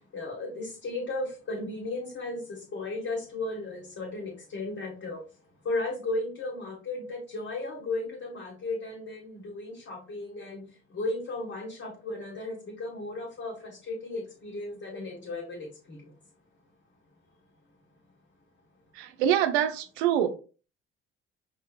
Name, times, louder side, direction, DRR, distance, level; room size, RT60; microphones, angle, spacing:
voice 1, 0.1-5.2 5.7-10.6 10.9-16.0, left 2 dB, 45° left, 1.9 m, -35 dB
voice 2, 19.0-20.3, right 10 dB, 75° right, 0.8 m, -25 dB
5.4 x 3.3 x 2.5 m
hypercardioid pair, 50°, 33 cm